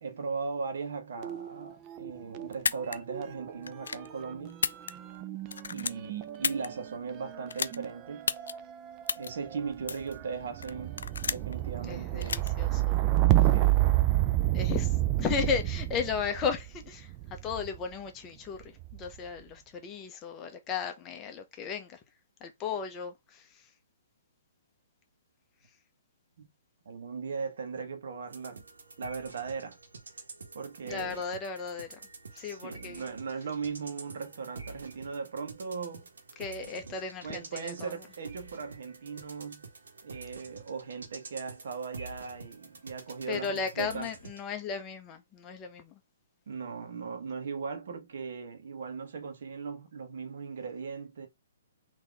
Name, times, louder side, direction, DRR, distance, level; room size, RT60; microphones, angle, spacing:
voice 1, 0.0-4.6 5.7-8.3 9.2-11.0 11.2-12.7 13.5-13.8 26.4-26.5 26.8-28.6 29.0-29.8 30.1-30.2 30.5-31.2 32.3-36.1 36.6-39.7 40.0-44.1 46.5-51.3, right 5 dB, 65° right, 1.2 m, -38 dB
sound 1, 1.2-2.5 2.8-17.8 18.6-19.2, right 16 dB, 25° right, 0.5 m, -30 dB
sound 2, 2.5-3.0 3.6-4.1 4.5-5.2 5.5-6.7 7.5-7.8 8.3-8.5 9.1-9.3 9.9-10.1 10.6-11.5 12.2-12.5, left 5 dB, 80° left, 0.4 m, -31 dB
voice 2, 11.8-13.0 14.5-22.0 22.4-23.7 30.8-32.0 32.4-33.0 36.4-37.9 43.3-46.0, left 6 dB, 20° left, 0.8 m, -35 dB
sound 3, 28.3-44.4, right 4 dB, 85° right, 1.5 m, -48 dB
4.0 x 2.9 x 3.4 m
hypercardioid pair, 145°, 0 cm